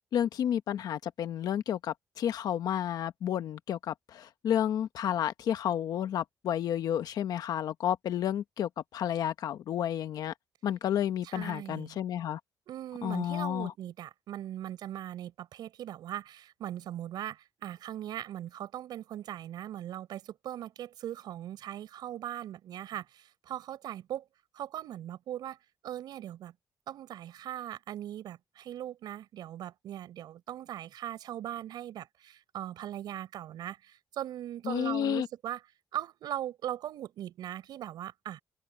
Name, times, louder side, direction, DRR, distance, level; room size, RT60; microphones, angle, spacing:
voice 1, 0.1-10.3 10.6-12.4 13.0-13.7 34.6-35.3, left 10 dB, 65° left, 1.0 m, -31 dB
voice 2, 11.2-12.0 12.7-24.2 24.5-25.6 25.8-26.5 26.9-35.6 35.9-38.4, right 12 dB, 80° right, 6.6 m, -39 dB
cardioid pair, 155°, 7 cm